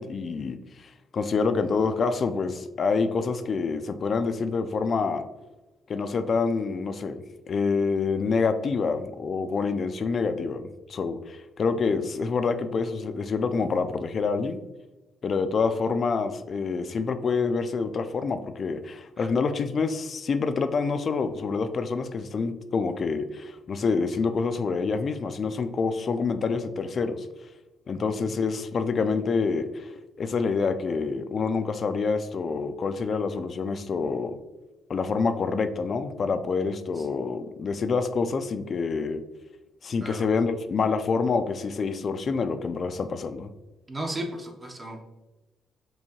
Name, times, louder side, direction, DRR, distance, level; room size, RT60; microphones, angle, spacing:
voice 1, 0.0-5.2 5.9-14.6 15.2-27.3 27.9-29.9 30.2-34.4 34.9-39.2 39.8-43.5, left 4 dB, 50° left, 10 dB, 0.3 m, -27 dB
voice 2, 28.0-28.3 37.0-37.1 40.0-40.3 43.9-45.0, right 1 dB, 25° right, 2 dB, 0.6 m, -36 dB
4.5 x 2.7 x 2.8 m, 1.1 s
cardioid pair, 90°, 0 cm